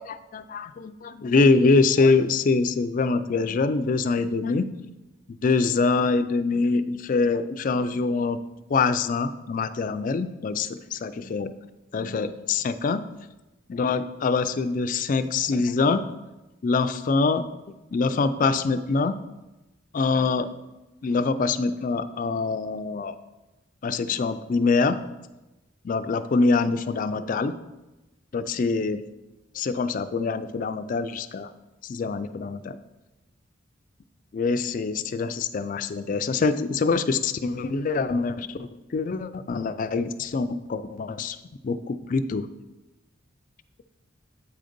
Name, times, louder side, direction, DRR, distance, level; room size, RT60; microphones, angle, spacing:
voice 1, 0.0-4.7 5.3-8.4 8.7-11.5 11.9-13.0 13.7-16.0 16.6-17.5 17.9-19.2 19.9-20.5 21.0-23.2 23.8-25.0 25.8-27.5 28.3-29.0 29.5-31.5 31.8-32.8 34.3-41.4 41.6-42.5, left 4 dB, 40° left, 10 dB, 0.3 m, -24 dB
8.4 x 3.8 x 5.1 m, 1.0 s
head